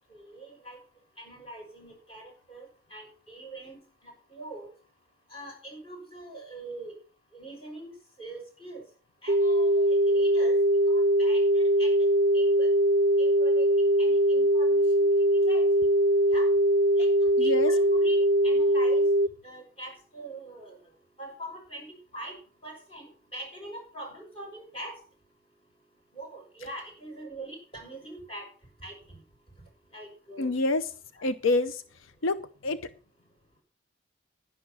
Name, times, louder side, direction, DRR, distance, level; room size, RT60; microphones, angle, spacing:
voice 1, 0.1-0.8 1.2-3.8 4.0-4.7 5.3-6.9 7.3-7.9 8.2-8.8 9.2-10.6 10.9-11.9 12.3-12.7 13.2-15.1 15.3-15.7 16.3-16.5 17.0-18.2 18.4-19.1 19.4-20.8 21.2-21.9 22.1-22.3 22.6-25.0 26.1-28.5 28.8-28.9 29.9-30.5 31.2-31.3, right 1 dB, 25° left, 1 dB, 6.0 m, -43 dB
sound 1, 9.3-19.3, right 1 dB, 45° right, 0.6 m, -22 dB
voice 2, 17.4-17.7 30.4-30.8 31.2-31.8 32.2-32.8, left 2 dB, 80° left, 12 dB, 0.7 m, -27 dB
11.0 x 10.5 x 6.1 m, 0.40 s
head